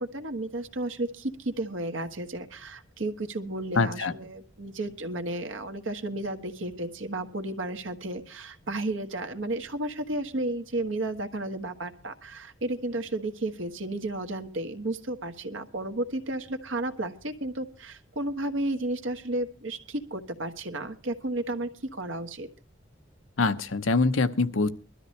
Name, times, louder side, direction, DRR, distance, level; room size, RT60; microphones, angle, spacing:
voice 1, 0.0-22.5, right 2 dB, 80° right, 7 dB, 1.4 m, -33 dB
voice 2, 3.8-4.1 23.4-24.7, left 3 dB, 85° left, 11 dB, 0.8 m, -24 dB
21.5 x 13.0 x 3.2 m, 0.35 s
head